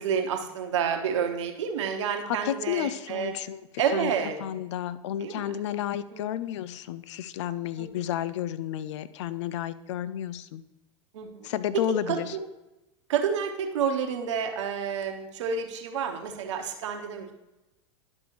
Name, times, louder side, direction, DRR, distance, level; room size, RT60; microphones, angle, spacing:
voice 1, 0.0-3.3 3.8-4.4 5.2-5.6 6.1-6.3 7.8-7.9 11.1-11.5 11.7-12.4 13.1-17.4, right 7 dB, 70° right, 4 dB, 1.1 m, -29 dB
voice 2, 2.3-3.6 3.9-4.1 4.4-10.6 11.4-12.3, left 11 dB, 70° left, 15 dB, 0.5 m, -31 dB
11.5 x 5.3 x 3.0 m, 0.98 s
hypercardioid pair, 95°, 16 cm